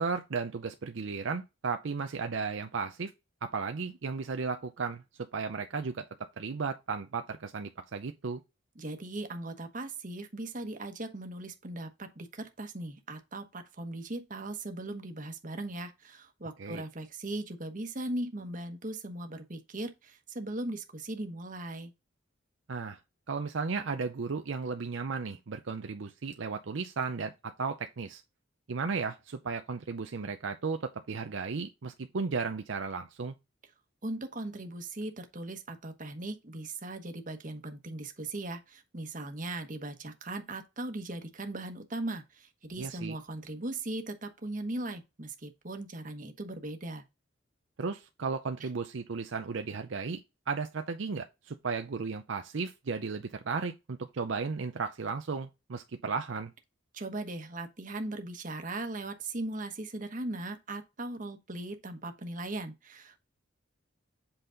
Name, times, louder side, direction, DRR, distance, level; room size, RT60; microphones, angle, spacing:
voice 1, 0.0-3.1 3.4-5.0 5.3-6.0 6.4-8.4 16.6-16.8 22.7-23.0 23.3-28.2 28.7-33.3 42.8-43.2 47.8-50.2 50.5-56.5, right 4 dB, 70° right, 0.6 m, -34 dB
voice 2, 8.7-21.9 34.0-47.0 48.6-48.7 56.9-63.2, right 2 dB, 40° right, 1.2 m, -38 dB
7.9 x 4.1 x 3.8 m
head